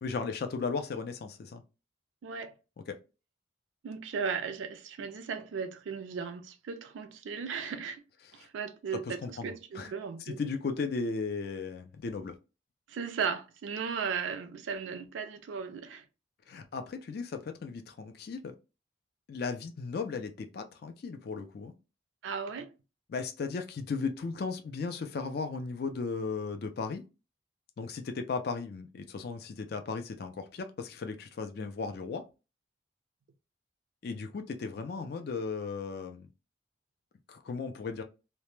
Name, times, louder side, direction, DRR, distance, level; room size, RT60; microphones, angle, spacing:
voice 1, 0.0-1.6 2.9-3.0 8.4-8.5 9.1-9.9 10.3-12.3 16.5-18.5 19.3-21.7 23.1-27.0 27.8-32.2 34.0-36.3 37.3-38.0, left 4 dB, 55° left, 0.3 m, -36 dB
voice 2, 2.2-2.5 3.8-8.0 8.3-10.4 12.9-16.0 22.2-22.7, right 6 dB, 85° right, 0.4 m, -36 dB
2.1 x 2.0 x 3.0 m
head